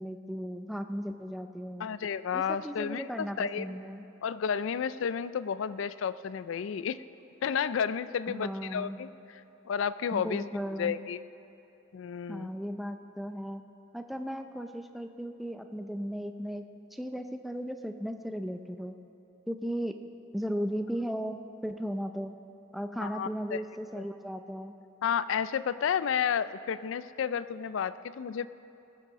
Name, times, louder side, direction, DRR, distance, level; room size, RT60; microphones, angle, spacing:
voice 1, 0.0-1.9 2.3-4.0 8.3-9.0 10.1-11.0 12.3-13.6 13.9-16.6 16.9-18.9 19.5-19.9 20.3-22.4 22.7-24.7, equal, ahead, 6 dB, 0.4 m, -36 dB
voice 2, 1.8-3.7 4.2-7.0 7.4-9.1 9.7-10.4 10.8-11.2 11.9-12.5 23.0-23.6 24.0-24.1 25.0-28.5, left 7 dB, 65° left, 15 dB, 0.3 m, -31 dB
19.5 x 6.7 x 6.2 m, 2.9 s
head